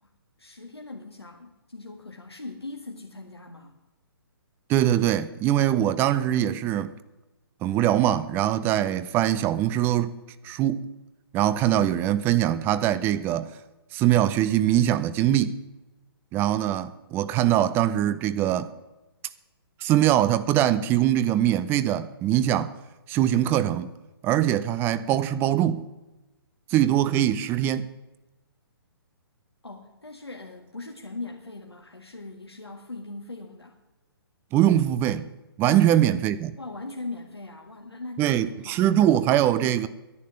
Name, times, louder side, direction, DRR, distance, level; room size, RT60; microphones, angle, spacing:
voice 1, 0.4-3.8 29.6-33.8 35.7-35.9 36.6-38.8, left 2 dB, 85° left, 1.8 m, -40 dB
voice 2, 4.7-6.9 7.6-10.1 10.4-10.9 11.3-13.5 13.9-15.6 16.3-18.7 19.8-22.7 23.1-23.9 24.2-25.9 26.7-27.9 34.5-35.3 35.6-36.6 38.2-39.9, right 12 dB, 15° right, 0.5 m, -22 dB
11.0 x 9.2 x 9.7 m
figure-of-eight pair, 130°, 13 cm